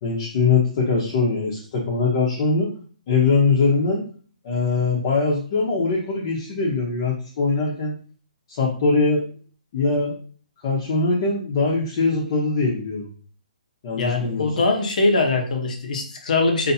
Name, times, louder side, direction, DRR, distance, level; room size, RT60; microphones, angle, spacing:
voice 1, 0.0-2.7 3.1-4.0 4.4-8.0 8.5-9.3 9.7-10.1 10.6-13.1 13.8-14.5, left 4 dB, 40° left, -4 dB, 1.1 m, -22 dB
voice 2, 13.9-16.7, left 3 dB, 65° left, 3 dB, 1.2 m, -22 dB
4.2 x 3.0 x 2.8 m, 0.43 s
hypercardioid pair, 155°, 5 cm